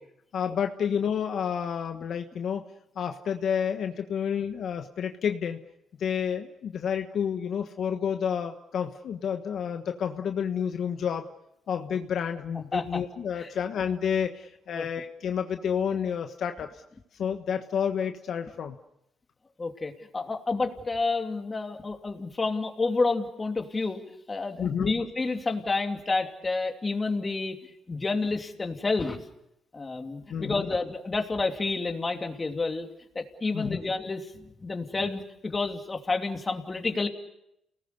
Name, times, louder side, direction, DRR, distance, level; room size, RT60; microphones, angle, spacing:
voice 1, 0.3-2.6 3.0-5.6 6.0-11.3 11.7-16.8 17.2-18.7 24.6-24.9 30.3-30.7 33.5-33.8, left 7 dB, 65° left, 6 dB, 1.3 m, -30 dB
voice 2, 12.7-13.0 13.4-13.5 14.7-14.9 19.6-24.0 24.3-27.6 27.9-29.2 29.7-32.9 33.1-37.1, left 3 dB, 25° left, 4 dB, 2.9 m, -29 dB
29.5 x 19.0 x 6.8 m, 0.81 s
cardioid pair, 90°, 0 cm